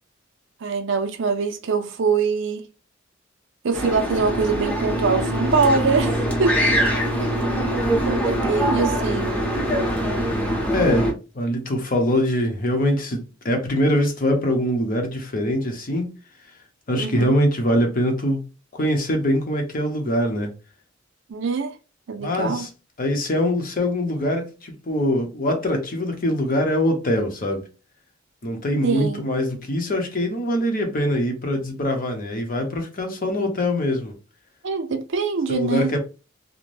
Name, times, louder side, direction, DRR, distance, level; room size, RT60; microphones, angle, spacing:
voice 1, 0.6-2.7 3.6-7.0 8.0-9.4 17.0-17.4 21.3-21.8 22.1-22.7 28.8-29.2 34.6-35.9, right 4 dB, 65° right, 0.5 m, -23 dB
sound 1, 3.7-11.1, equal, 5° left, 0.8 m, -23 dB
voice 2, 10.7-16.1 16.9-18.4 18.7-20.5 22.2-22.7 23.0-27.6 28.4-34.1 35.5-36.0, left 1 dB, 45° left, 0.7 m, -23 dB
2.6 x 2.1 x 3.1 m
head